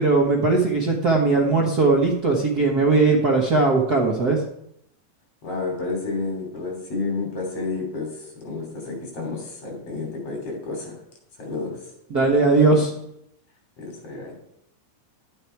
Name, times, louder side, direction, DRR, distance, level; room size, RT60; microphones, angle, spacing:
voice 1, 0.0-4.4 12.1-12.9, right 3 dB, 85° right, -1 dB, 0.8 m, -19 dB
voice 2, 5.4-8.1 8.4-11.0 11.4-11.8 13.8-14.4, left 3 dB, 45° left, 0 dB, 4.1 m, -30 dB
12.0 x 8.9 x 4.6 m, 0.77 s
omnidirectional pair, 4.0 m